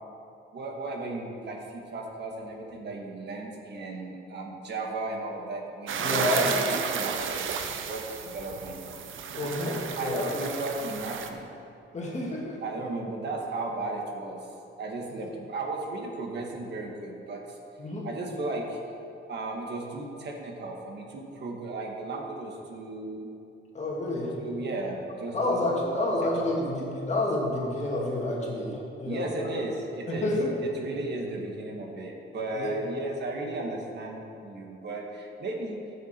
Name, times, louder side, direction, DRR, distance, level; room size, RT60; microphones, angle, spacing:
voice 1, 0.5-9.1 9.9-11.5 12.6-14.5 14.8-17.6 18.0-18.8 19.3-23.3 24.4-25.9 29.0-30.3 30.7-35.8, right 2 dB, 60° right, 0 dB, 1.7 m, -35 dB
sound 1, 5.9-11.3, right 6 dB, 80° right, 0.8 m, -32 dB
voice 2, 6.0-6.5 9.3-10.2 11.9-12.6 17.8-18.1 23.7-24.3 25.3-29.5 30.1-30.5 32.5-32.7, left 1 dB, 35° left, -3 dB, 2.2 m, -29 dB
14.5 x 7.4 x 4.5 m, 2.8 s
wide cardioid pair, 145°, 20 cm